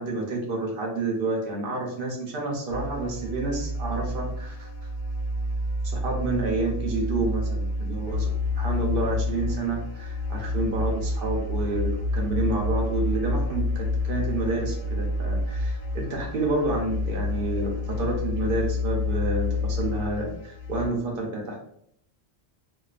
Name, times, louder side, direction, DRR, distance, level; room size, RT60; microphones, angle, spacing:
voice 1, 0.0-4.7 5.8-8.3 8.6-21.6, right 2 dB, 60° right, -1 dB, 0.7 m, -29 dB
sound 1, 2.7-20.9, left 2 dB, 70° left, 0.8 m, -29 dB
2.3 x 2.3 x 2.3 m, 0.71 s
omnidirectional pair, 1.2 m